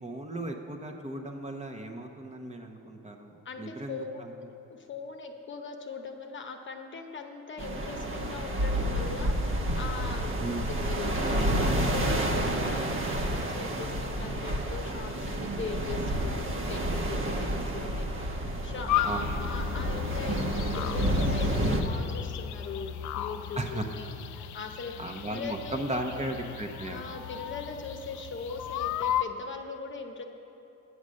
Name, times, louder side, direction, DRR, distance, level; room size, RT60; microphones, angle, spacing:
voice 1, 0.0-4.5 10.4-10.7 19.0-19.5 23.5-23.9 25.0-27.0, right 1 dB, 25° right, 2 dB, 0.9 m, -36 dB
voice 2, 3.4-4.2 4.7-10.3 10.7-24.9 25.3-26.3 26.9-30.2, left 4 dB, 40° left, 4 dB, 0.9 m, -40 dB
sound 1, 7.6-21.8, right 1 dB, 45° right, 1.1 m, -30 dB
sound 2, 18.9-29.2, left 11 dB, 75° left, 0.5 m, -35 dB
9.6 x 7.1 x 6.4 m, 2.9 s
cardioid pair, 90°, 30 cm